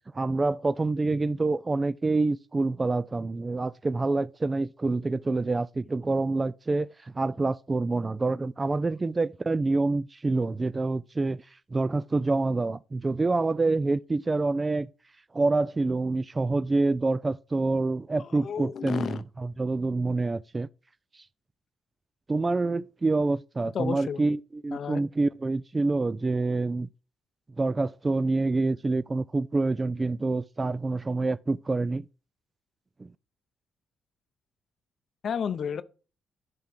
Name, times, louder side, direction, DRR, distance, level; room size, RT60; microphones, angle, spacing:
voice 1, 0.1-11.4 11.7-14.9 15.3-20.7 21.1-21.2 22.3-26.9 27.6-32.1 33.0-33.1, right 3 dB, 25° right, 0.3 m, -27 dB
voice 2, 18.2-19.2 23.7-24.3 24.7-25.0 35.2-35.8, left 7 dB, 55° left, 0.7 m, -32 dB
10.5 x 3.7 x 6.0 m
cardioid pair, 90°, 0 cm